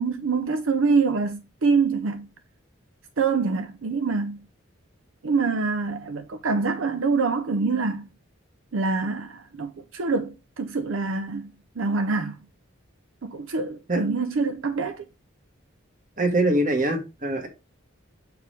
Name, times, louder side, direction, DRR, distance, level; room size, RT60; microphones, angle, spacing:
voice 1, 0.0-2.3 3.2-4.4 5.2-8.1 8.7-12.4 13.2-15.0, right 4 dB, 80° right, 0.6 m, -25 dB
voice 2, 16.2-17.5, right 1 dB, 40° right, 1.4 m, -23 dB
6.5 x 4.7 x 3.3 m
head